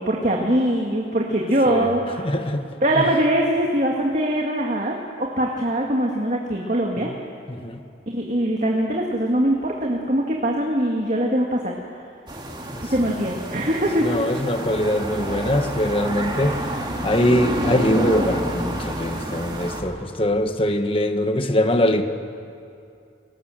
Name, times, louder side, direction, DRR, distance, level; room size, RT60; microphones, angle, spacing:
voice 1, 0.0-2.4 2.8-7.1 8.1-11.7 12.8-14.1, right 1 dB, 40° right, 0 dB, 2.0 m, -22 dB
voice 2, 2.2-2.6 3.0-3.1 7.1-7.2 7.5-7.8 12.7-12.8 14.0-16.6 17.0-22.0, left 1 dB, 30° left, 7 dB, 1.4 m, -22 dB
sound 1, 12.3-19.8, right 1 dB, 25° right, 2.8 m, -29 dB
29.0 x 19.5 x 7.7 m, 2.5 s
head